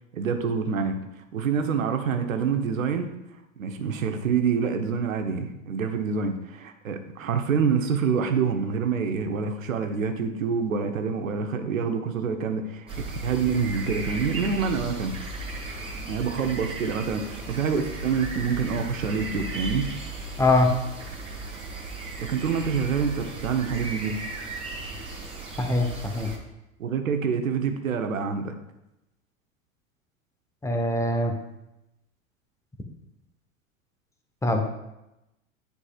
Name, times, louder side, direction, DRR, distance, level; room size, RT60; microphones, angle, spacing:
voice 1, 0.1-1.0 1.3-3.1 3.6-15.2 16.1-19.9 22.2-24.2 26.8-28.5, right 6 dB, 75° right, 6 dB, 1.0 m, -26 dB
sound 1, 12.9-26.4, right 3 dB, 15° right, 1.8 m, -36 dB
voice 2, 20.4-20.7 25.6-25.9 26.1-26.3 30.6-31.3 34.4-34.6, left 2 dB, 5° left, 4 dB, 0.9 m, -22 dB
9.9 x 5.2 x 2.5 m, 0.92 s
figure-of-eight pair, 85°, 41 cm